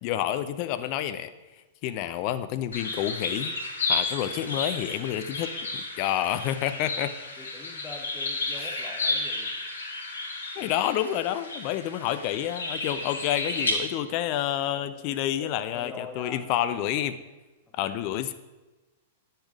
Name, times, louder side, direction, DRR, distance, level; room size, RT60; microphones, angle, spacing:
voice 1, 0.0-1.3 1.8-3.5 3.9-7.1 10.6-17.2 17.7-18.3, left 11 dB, 45° left, 12 dB, 0.6 m, -29 dB
sound 1, 2.7-13.7, left 3 dB, 75° left, 1.8 m, -32 dB
voice 2, 7.4-9.5 14.7-16.4 17.8-18.1, left 3 dB, 15° left, -1 dB, 1.3 m, -44 dB
9.8 x 6.7 x 5.0 m, 1.1 s
figure-of-eight pair, 105°, 0 cm